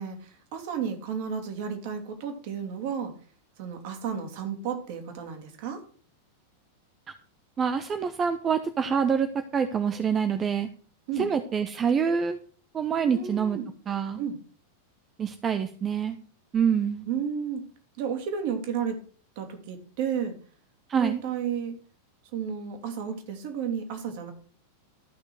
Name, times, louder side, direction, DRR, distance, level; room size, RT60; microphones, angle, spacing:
voice 1, 0.0-3.1 3.6-5.8 11.1-11.3 13.0-13.7 14.2-14.4 17.1-17.6 18.0-19.0 19.4-20.4 20.9-21.7 22.3-24.3, right 7 dB, 50° right, 5 dB, 2.7 m, -32 dB
voice 2, 7.6-10.7 11.2-12.4 12.7-13.6 13.9-14.2 15.2-16.2 16.5-17.1 20.9-21.2, right 6 dB, 25° right, 10 dB, 0.8 m, -26 dB
13.0 x 6.1 x 6.3 m, 0.41 s
figure-of-eight pair, 90°, 0 cm